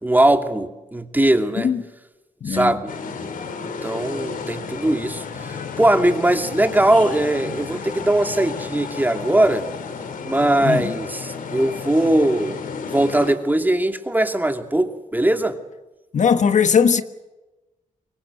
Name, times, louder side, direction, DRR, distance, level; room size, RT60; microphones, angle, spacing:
voice 1, 0.0-1.7 2.5-2.9 3.6-9.6 10.2-12.6 12.9-15.6, right 1 dB, 15° right, 2.6 m, -20 dB
voice 2, 2.4-2.7 10.6-10.9 16.1-17.0, left 6 dB, 65° left, 1.5 m, -18 dB
sound 1, 2.9-13.3, left 5 dB, 85° left, 3.1 m, -32 dB
24.5 x 21.5 x 7.8 m
cardioid pair, 85°, 14 cm